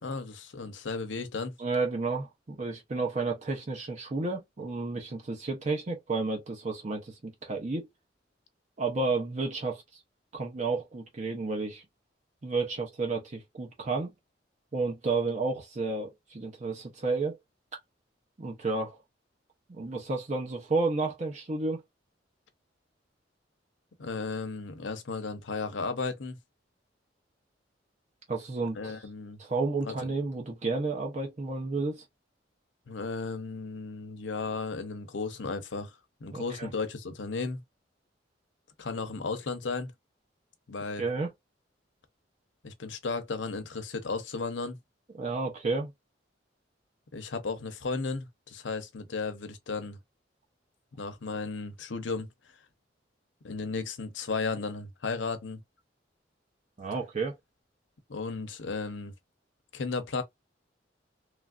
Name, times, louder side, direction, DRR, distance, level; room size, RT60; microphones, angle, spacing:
voice 1, 0.0-1.5 24.0-26.4 28.7-29.4 29.8-30.1 32.9-37.6 38.8-39.9 40.7-41.0 42.6-44.8 47.1-50.0 51.0-52.3 53.4-55.6 58.1-59.1 59.7-60.2, left 4 dB, 80° left, 0.7 m, -34 dB
voice 2, 1.6-7.9 8.8-10.0 10.3-11.8 12.4-14.1 14.7-17.4 18.4-19.0 19.7-21.8 28.3-29.0 29.4-32.0 36.3-36.7 41.0-41.3 45.2-45.9 56.8-57.4, right 3 dB, 40° right, 0.7 m, -31 dB
3.2 x 2.5 x 2.3 m
head